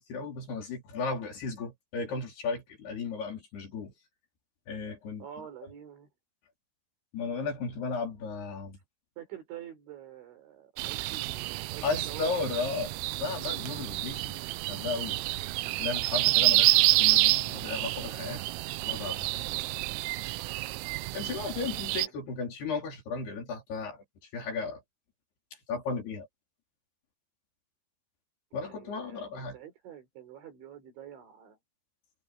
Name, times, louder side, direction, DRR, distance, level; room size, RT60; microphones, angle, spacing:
voice 1, 0.0-3.9 4.7-5.3 7.1-8.8 11.8-12.9 13.2-15.2 15.8-18.5 18.9-19.3 21.1-24.0 24.3-24.8 25.7-26.3 28.5-29.6, left 4 dB, 55° left, 6.2 m, -35 dB
voice 2, 5.2-6.1 9.2-12.3 19.4-19.7 22.0-22.2 28.6-31.6, right 10 dB, 70° right, 6.8 m, -47 dB
sound 1, 10.8-22.1, right 20 dB, 85° right, 3.2 m, -28 dB
omnidirectional pair, 5.6 m